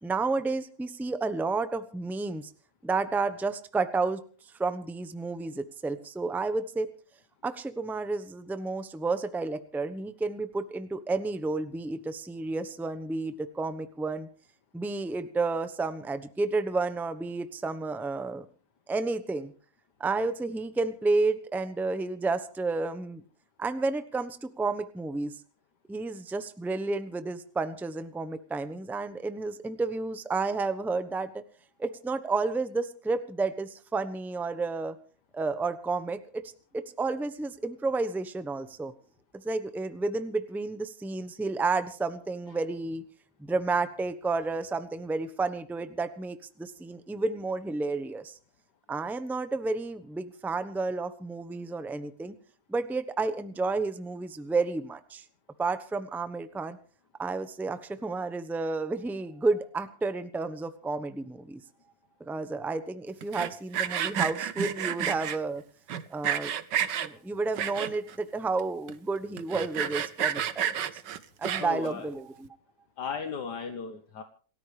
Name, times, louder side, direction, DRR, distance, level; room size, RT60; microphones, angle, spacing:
voice 1, 0.0-2.5 2.8-4.2 4.6-6.9 7.4-14.3 14.7-18.4 18.9-19.5 20.0-23.2 23.6-25.3 25.9-31.4 31.8-35.0 35.3-36.4 36.7-38.9 39.4-43.0 43.4-48.4 48.9-52.4 52.7-55.2 55.6-56.8 57.2-61.6 62.3-65.6 66.1-66.5 67.0-70.7 71.4-72.5, right 3 dB, ahead, 11 dB, 0.7 m, -31 dB
Sawing, 63.2-65.4 65.9-67.1 67.5-68.1 68.6-68.7 68.9-69.0 69.4-71.9, right 9 dB, 80° right, 1.6 m, -30 dB
voice 2, 71.6-72.1 73.0-74.2, left 6 dB, 70° left, 7 dB, 1.8 m, -36 dB
28.0 x 14.0 x 3.3 m, 0.41 s
omnidirectional pair, 1.9 m